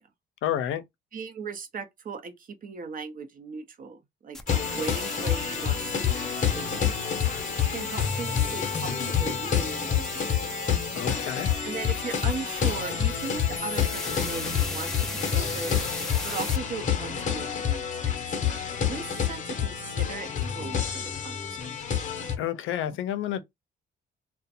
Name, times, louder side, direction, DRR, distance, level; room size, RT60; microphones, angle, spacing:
voice 1, 0.4-0.8 10.9-11.5 22.4-23.4, left 11 dB, 80° left, 0.5 m, -29 dB
voice 2, 1.1-7.0 7.7-10.4 11.6-15.8 16.2-18.2 18.8-20.3 20.5-21.8, right 5 dB, 45° right, 0.6 m, -38 dB
sound 1, 4.3-16.6, equal, ahead, 0.4 m, -38 dB
sound 2, 4.5-22.4, left 8 dB, 40° left, 0.7 m, -28 dB
2.4 x 2.1 x 2.7 m
cardioid pair, 90°, 20 cm